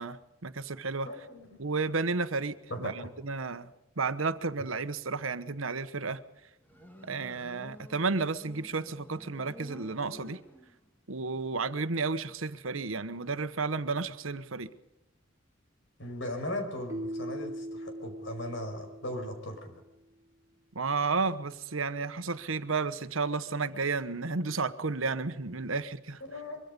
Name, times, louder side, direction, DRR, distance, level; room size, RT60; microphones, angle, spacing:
voice 1, 0.0-1.1 1.6-3.7 4.0-6.2 7.1-10.4 11.1-14.7 20.7-26.2, right 4 dB, 85° right, 12 dB, 1.2 m, -32 dB
voice 2, 1.0-1.6 2.7-3.1 16.0-19.8 26.3-26.6, left 1 dB, 65° left, 6 dB, 5.3 m, -38 dB
Motorcycle, 6.6-11.0, equal, 10° left, 2.5 m, -50 dB
Keyboard (musical), 16.9-19.7, equal, 15° right, 2.3 m, -40 dB
24.0 x 23.5 x 5.3 m, 0.91 s
head